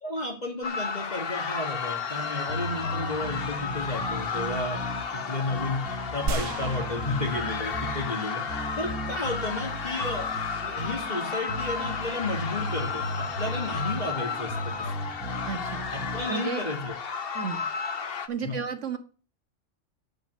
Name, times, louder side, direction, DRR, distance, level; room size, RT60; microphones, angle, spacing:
voice 1, 0.0-4.8 5.1-10.3 10.6-14.7 15.9-16.9 18.4-18.6, left 2 dB, 35° left, 0 dB, 2.2 m, -33 dB
sound 1, 0.6-18.3, left 6 dB, 50° left, 1.1 m, -33 dB
sound 2, 2.2-16.2, equal, 5° right, 2.5 m, -37 dB
sound 3, 6.3-8.0 8.5-8.6, right 4 dB, 90° right, 1.3 m, -34 dB
voice 2, 15.5-15.9 16.3-16.6 17.3-17.6 18.3-19.0, right 6 dB, 70° right, 8 dB, 1.8 m, -32 dB
10.5 x 5.7 x 7.5 m, 0.36 s
omnidirectional pair, 1.3 m